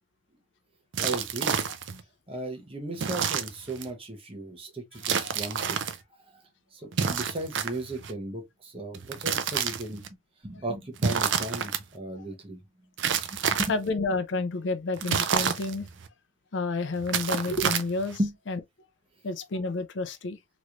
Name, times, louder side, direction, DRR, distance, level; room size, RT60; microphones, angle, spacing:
sound 1, 0.9-2.0 3.0-3.9 5.0-6.0 6.9-8.1 8.9-10.1 11.0-11.8 13.0-13.9 15.0-16.1 17.0-18.2, right 7 dB, 80° right, 0.5 m, -29 dB
voice 1, 1.0-1.6 2.3-5.8 6.7-10.0 10.4-12.6 13.3-13.7 18.2-18.3, right 1 dB, 30° right, 0.9 m, -35 dB
voice 2, 13.7-15.9 16.5-18.2 18.5-18.6 19.2-20.4, left 3 dB, 75° left, 0.5 m, -30 dB
3.2 x 3.0 x 2.4 m
head